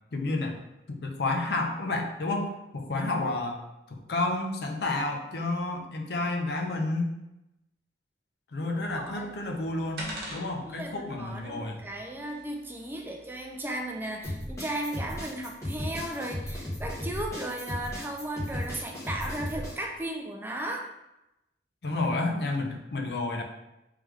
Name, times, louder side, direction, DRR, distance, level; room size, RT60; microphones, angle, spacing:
voice 1, 0.1-0.6 0.9-3.6 3.9-7.2 8.5-11.8 21.8-23.4, left 2 dB, 65° left, 3 dB, 0.6 m, -30 dB
sound 1, 8.8-14.3, right 1 dB, 65° right, 0.9 m, -46 dB
voice 2, 8.9-9.3 10.6-20.9, right 1 dB, 10° right, 1 dB, 0.4 m, -35 dB
sound 2, 14.2-19.7, left 1 dB, 15° left, 1.2 m, -35 dB
3.3 x 3.1 x 3.4 m, 0.92 s
head